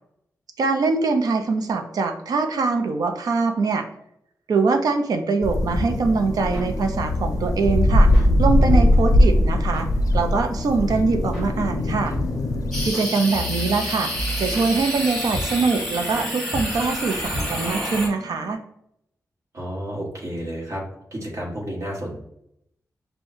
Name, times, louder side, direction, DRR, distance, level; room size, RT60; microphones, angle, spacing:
voice 1, 0.6-3.9 4.5-8.1 8.4-9.9 10.1-12.1 12.8-14.1 14.4-18.6, right 4 dB, 85° right, 6 dB, 0.5 m, -23 dB
sound 1, 5.4-12.9, left 1 dB, 60° left, 0.4 m, -20 dB
sound 2, 5.7-18.5, equal, 15° right, 1.5 m, -33 dB
sound 3, 12.7-18.1, equal, ahead, 1.1 m, -29 dB
voice 2, 19.5-20.8 21.1-22.2, equal, 55° right, -3 dB, 1.3 m, -31 dB
6.0 x 2.2 x 2.7 m, 0.75 s
wide cardioid pair, 175°, 6 cm